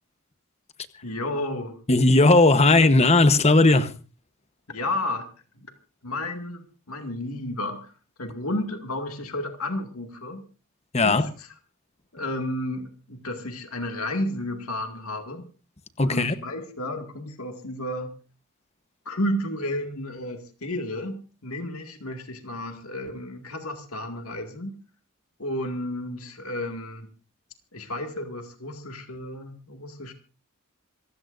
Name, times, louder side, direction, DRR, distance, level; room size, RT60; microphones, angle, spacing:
voice 1, 1.0-1.8 4.7-5.3 5.6-5.7 6.0-7.9 8.2-10.4 11.0-11.2 12.1-15.5 16.0-18.1 19.1-24.8 25.4-27.1 27.7-30.1, left 1 dB, 90° left, 2.1 m, -32 dB
voice 2, 1.9-3.9 10.9-11.3 16.0-16.3, left 2 dB, 30° left, 1.0 m, -17 dB
27.0 x 15.5 x 2.6 m
head